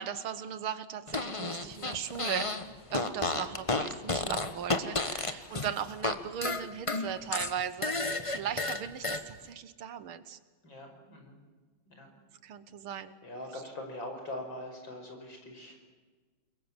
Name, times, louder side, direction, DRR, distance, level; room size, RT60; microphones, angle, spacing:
voice 1, 0.0-2.5 2.9-10.4 12.4-13.1 13.5-13.6, right 8 dB, 75° right, 13 dB, 2.0 m, -38 dB
Fart, 1.1-2.6 2.9-6.1 6.4-9.2, left 3 dB, 20° left, 0.9 m, -32 dB
voice 2, 10.6-11.4 11.9-12.1 13.2-15.8, left 1 dB, 60° left, 3 dB, 6.2 m, -42 dB
28.5 x 22.0 x 7.5 m, 1.4 s
omnidirectional pair, 2.3 m